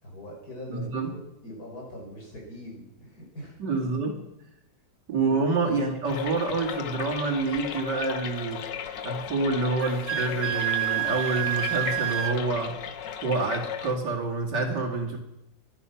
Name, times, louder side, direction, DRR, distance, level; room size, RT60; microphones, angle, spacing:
voice 1, 0.0-3.6 5.2-5.4, left 1 dB, 60° left, -2 dB, 6.2 m, -42 dB
voice 2, 0.7-1.1 3.6-4.2 5.1-8.6 9.0-12.8 13.2-15.2, right 3 dB, 75° right, -1 dB, 2.9 m, -27 dB
sound 1, 6.1-13.9, left 8 dB, 85° left, 1.7 m, -36 dB
Wind instrument woodwind instrument, 9.8-12.4, right 13 dB, 60° right, 1.3 m, -28 dB
23.5 x 9.7 x 5.8 m, 0.88 s
omnidirectional pair, 1.9 m